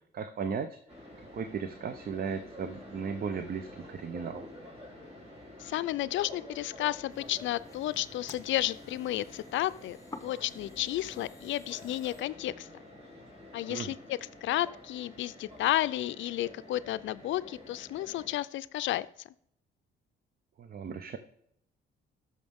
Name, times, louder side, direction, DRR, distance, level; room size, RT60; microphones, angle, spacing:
voice 1, 0.1-0.8 1.3-4.5 13.7-13.9 20.6-21.2, right 6 dB, 50° right, 10 dB, 0.7 m, -36 dB
sound 1, 0.9-18.4, left 1 dB, 30° right, 3.3 m, -49 dB
voice 2, 5.6-10.0 10.2-12.7 13.5-19.1, left 14 dB, 70° left, 16 dB, 0.4 m, -32 dB
sound 2, 7.1-12.2, left 3 dB, 15° left, 1.1 m, -52 dB
13.5 x 6.4 x 3.6 m, 0.73 s
cardioid pair, 90°, 20 cm